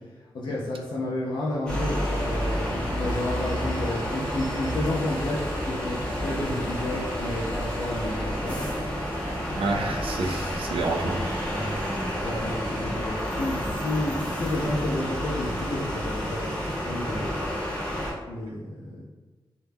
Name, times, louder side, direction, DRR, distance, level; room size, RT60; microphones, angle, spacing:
voice 1, 0.3-8.7 12.2-16.5 16.8-17.4 18.3-19.1, left 1 dB, 60° left, -6 dB, 0.4 m, -31 dB
sound 1, 1.7-18.1, equal, 10° left, 0.7 m, -30 dB
voice 2, 9.6-11.9, right 2 dB, 90° right, 3 dB, 0.4 m, -30 dB
2.1 x 2.1 x 3.3 m, 1.3 s
wide cardioid pair, 105°, 9 cm